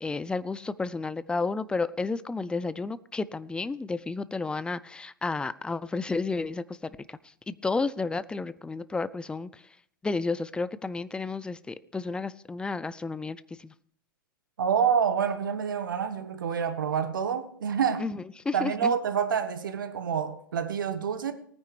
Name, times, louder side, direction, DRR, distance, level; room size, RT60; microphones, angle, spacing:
voice 1, 0.0-7.2 7.5-9.5 10.0-13.4 13.6-13.7 18.0-19.0, left 3 dB, 10° left, 0.4 m, -31 dB
voice 2, 14.6-18.0 18.5-21.3, right 7 dB, 70° right, 1.2 m, -27 dB
19.0 x 9.5 x 3.2 m
figure-of-eight pair, 100°, 11 cm